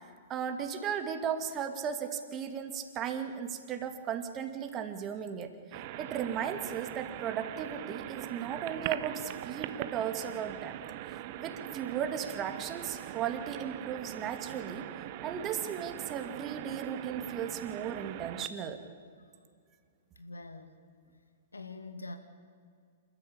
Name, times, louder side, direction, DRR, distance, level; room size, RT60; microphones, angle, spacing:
voice 1, 0.3-10.8 11.1-14.8 15.2-18.8, right 8 dB, 25° right, 6 dB, 2.4 m, -36 dB
sound 1, 5.7-18.5, right 14 dB, 45° right, 0.9 m, -41 dB
voice 2, 20.2-20.7 21.5-22.2, left 2 dB, 85° left, 8 dB, 2.2 m, -44 dB
28.0 x 13.5 x 8.7 m, 2.2 s
figure-of-eight pair, 115°, 0 cm